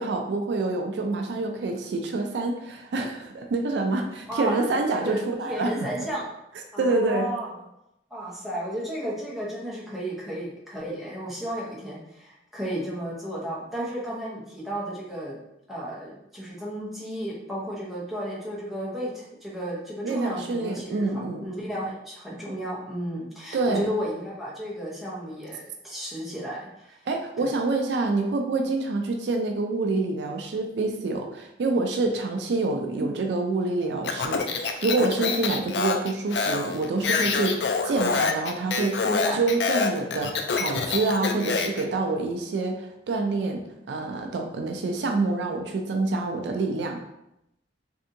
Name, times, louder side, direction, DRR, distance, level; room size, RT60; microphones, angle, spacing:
voice 1, 0.0-5.7 6.8-7.3 20.0-21.5 23.5-23.9 27.1-47.0, right 3 dB, 70° right, 3 dB, 0.4 m, -27 dB
voice 2, 4.3-4.7 4.9-5.2 5.5-6.3 6.7-7.5 8.1-15.4 15.7-26.7 27.4-27.5 32.9-33.1 39.0-39.4, equal, ahead, -7 dB, 0.8 m, -33 dB
Speech, 34.0-41.8, left 5 dB, 70° left, 0.3 m, -26 dB
3.3 x 2.7 x 2.6 m, 0.84 s
head